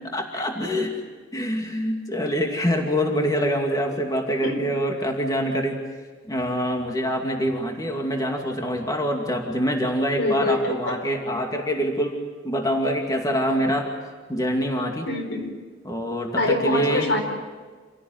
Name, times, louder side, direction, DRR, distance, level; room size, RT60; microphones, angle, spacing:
voice 1, 0.1-1.0 1.3-5.8 6.3-13.9 14.3-15.1 15.8-17.1, equal, 20° left, 2 dB, 2.5 m, -25 dB
voice 2, 10.1-11.0 15.1-15.6 16.4-17.2, left 2 dB, 80° left, 4 dB, 4.6 m, -24 dB
27.5 x 17.0 x 9.4 m, 1.5 s
head